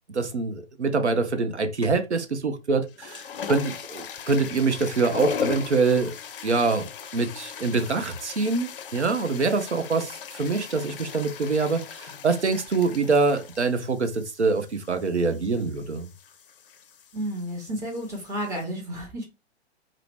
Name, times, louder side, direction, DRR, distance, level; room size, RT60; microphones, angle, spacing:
voice 1, 0.1-6.1 6.4-6.9 7.1-16.1, right 4 dB, 90° right, 0.5 m, -25 dB
sound 1, 1.8-2.2 2.8-18.6, left 7 dB, 55° left, 0.5 m, -38 dB
voice 2, 17.1-19.2, equal, 10° right, 0.7 m, -31 dB
2.8 x 2.0 x 3.2 m
figure-of-eight pair, 115°, 33 cm